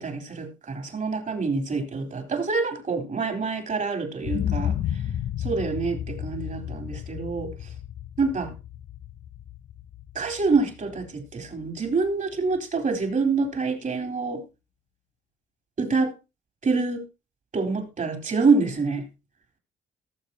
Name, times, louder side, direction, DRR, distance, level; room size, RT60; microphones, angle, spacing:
voice 1, 0.0-4.8 5.4-7.5 8.2-8.5 10.1-14.4 15.8-16.1 16.6-17.0 17.5-19.1, right 4 dB, 40° right, 6 dB, 3.9 m, -26 dB
sound 1, 4.2-12.1 12.5-12.6, left 10 dB, 55° left, 0.8 m, -33 dB
18.5 x 7.4 x 2.9 m, 0.27 s
cardioid pair, 90°, 20 cm